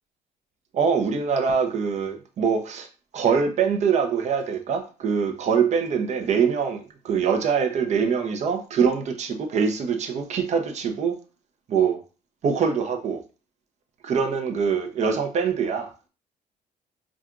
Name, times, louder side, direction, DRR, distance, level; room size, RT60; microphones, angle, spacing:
voice 1, 0.7-2.9 3.1-11.1 11.7-12.0 12.4-13.2 14.0-16.1, right 6 dB, 50° right, 0.7 m, -24 dB
5.6 x 2.5 x 2.5 m
cardioid pair, 110°, 15 cm